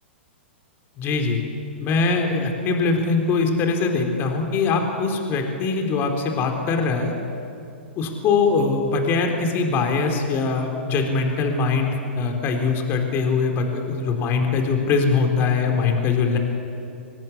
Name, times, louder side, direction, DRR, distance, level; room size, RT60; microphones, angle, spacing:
voice 1, 1.0-1.4 1.8-7.1 8.0-16.4, left 4 dB, 35° left, 3 dB, 3.9 m, -22 dB
26.0 x 19.5 x 8.5 m, 2.6 s
figure-of-eight pair, 110°, 6 cm